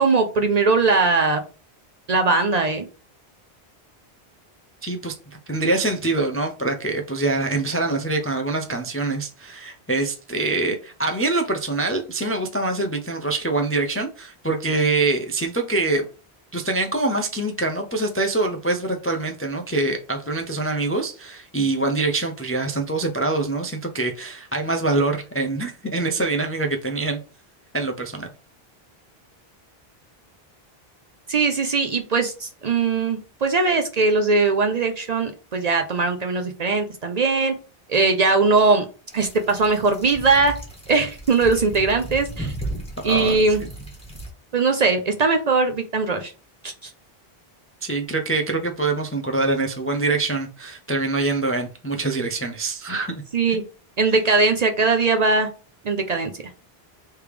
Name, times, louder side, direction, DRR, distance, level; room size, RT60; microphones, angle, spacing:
voice 1, 0.0-1.4 2.1-2.9 31.3-37.5 37.9-38.8 39.1-40.5 40.9-42.5 43.0-43.6 44.5-46.3 46.6-46.7 53.3-53.6 54.0-55.5 55.8-56.3, right 4 dB, 50° right, 0.5 m, -20 dB
voice 2, 4.8-5.1 5.5-16.1 16.5-27.2 27.7-28.3 42.4-42.5 43.0-43.7 47.8-53.2 53.5-53.6 54.1-54.2, right 2 dB, 20° left, 0.3 m, -24 dB
sound 1, 39.1-44.3, right 1 dB, 5° left, 1.5 m, -35 dB
3.3 x 3.3 x 4.8 m
omnidirectional pair, 1.0 m